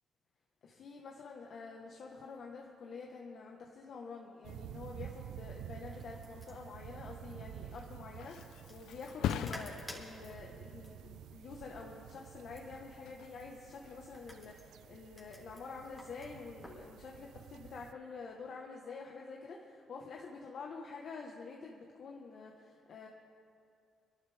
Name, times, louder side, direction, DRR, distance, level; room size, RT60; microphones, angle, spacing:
voice 1, 0.6-23.1, left 4 dB, 60° left, -1 dB, 1.4 m, -48 dB
sound 1, 4.4-17.9, right 10 dB, 85° right, 0.4 m, -51 dB
sound 2, 5.7-16.9, left 1 dB, 15° left, 3.6 m, -55 dB
Thump thud, 7.6-15.1 15.5-15.9, left 10 dB, 85° left, 0.6 m, -43 dB
26.5 x 12.0 x 3.6 m, 2.5 s
cardioid pair, 90°, 0 cm